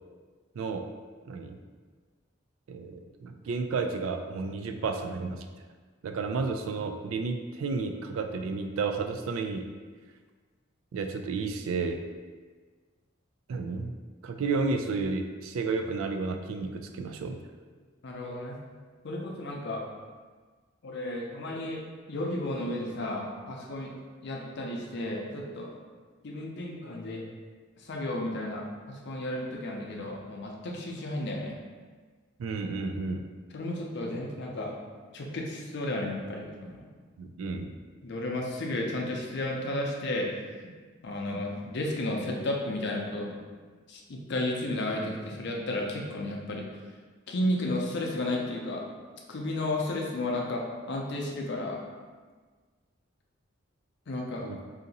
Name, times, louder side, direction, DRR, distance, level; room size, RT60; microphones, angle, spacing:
voice 1, 0.6-0.9 1.3-1.6 2.7-5.5 6.0-9.6 10.9-12.0 13.5-13.9 14.2-17.4 32.4-33.2 37.2-37.7 54.4-54.6, right 4 dB, 85° right, 6 dB, 0.3 m, -32 dB
voice 2, 18.0-18.6 19.0-19.8 20.8-21.8 22.1-23.9 24.2-25.7 26.2-27.2 27.8-31.6 33.5-34.7 35.1-36.8 38.0-40.3 41.0-43.4 43.9-46.7 47.3-48.8 49.3-51.8 54.1-54.5, left 1 dB, 60° left, 0 dB, 0.5 m, -33 dB
2.8 x 2.5 x 3.9 m, 1.5 s
head